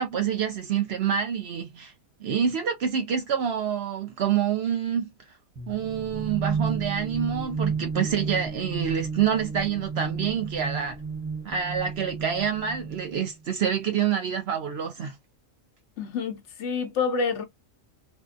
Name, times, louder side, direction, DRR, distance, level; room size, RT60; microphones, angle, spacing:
voice 1, 0.0-1.9 2.2-5.1 5.7-11.0 11.4-15.1, right 8 dB, 60° right, 0.7 m, -27 dB
sound 1, 5.6-13.3, right 5 dB, 10° right, 0.7 m, -32 dB
voice 2, 16.0-17.4, left 5 dB, 65° left, 0.8 m, -28 dB
2.8 x 2.0 x 2.4 m
omnidirectional pair, 1.4 m